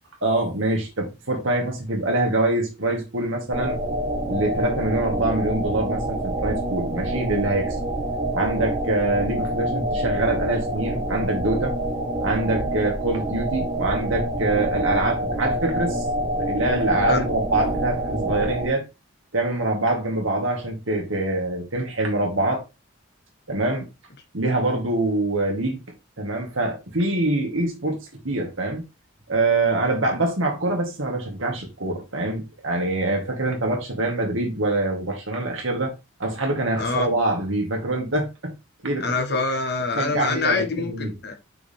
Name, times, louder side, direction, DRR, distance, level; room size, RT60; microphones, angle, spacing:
voice 1, 0.2-3.8 4.3-7.8 8.3-11.7 12.2-16.0 16.4-18.8 19.3-22.6 23.5-23.9 24.3-25.8 26.2-28.8 29.3-35.9 36.2-38.5 38.8-39.0 40.0-41.1, right 2 dB, 70° right, 2.0 m, -24 dB
sound 1, 3.5-18.7, right 1 dB, 35° right, 2.2 m, -27 dB
voice 2, 39.0-41.3, left 3 dB, 50° left, 1.4 m, -25 dB
5.8 x 4.9 x 3.6 m
head